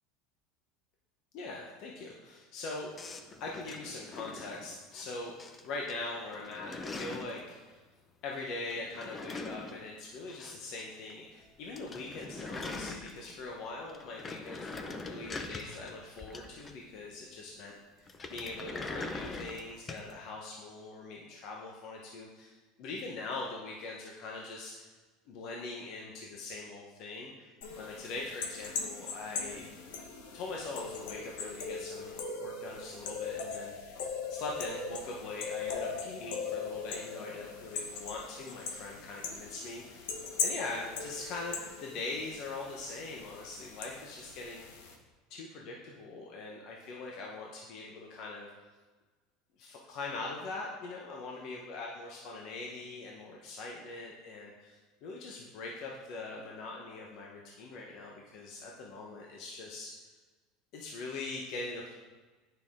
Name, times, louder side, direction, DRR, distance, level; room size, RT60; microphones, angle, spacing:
voice 1, 1.3-2.9 3.4-5.4 5.6-7.8 8.2-24.9 25.3-29.7 30.3-34.0 34.3-40.1 40.4-44.6 45.3-48.5 49.6-59.9 60.7-61.9, left 3 dB, 50° left, -1 dB, 1.0 m, -42 dB
sound 1, 3.0-5.1 5.4-5.9 6.2-7.4 8.7-10.8 11.1-11.2 11.5-11.6 11.8-13.5 13.9-17.0 18.1-20.1, left 3 dB, 20° left, 0.6 m, -42 dB
sound 2, 27.6-44.9, left 5 dB, 85° left, 1.1 m, -40 dB
9.3 x 5.8 x 3.7 m, 1.3 s
supercardioid pair, 150°, 0 cm